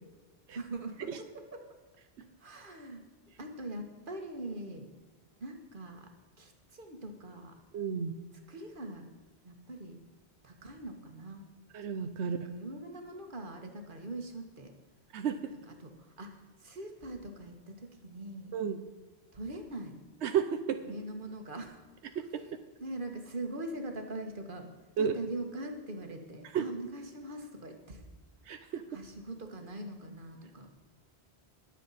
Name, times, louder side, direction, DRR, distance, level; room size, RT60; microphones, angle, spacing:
voice 1, 0.6-1.5 2.4-3.0 3.4-4.9 5.4-6.1 6.4-7.5 8.5-9.1 9.4-10.0 10.4-11.5 12.2-14.7 15.5-18.5 19.3-19.9 20.8-21.8 22.8-24.7 25.0-28.0 28.6-30.7, right 1 dB, 50° right, 4 dB, 1.8 m, -42 dB
voice 2, 7.7-8.1 11.7-12.4 15.1-15.5 18.5-18.8 20.2-20.8 22.1-22.4 25.0-25.2 26.5-26.6 28.5-28.8, right 7 dB, 90° right, 8 dB, 1.0 m, -32 dB
21.0 x 7.4 x 4.2 m, 1.3 s
omnidirectional pair, 1.1 m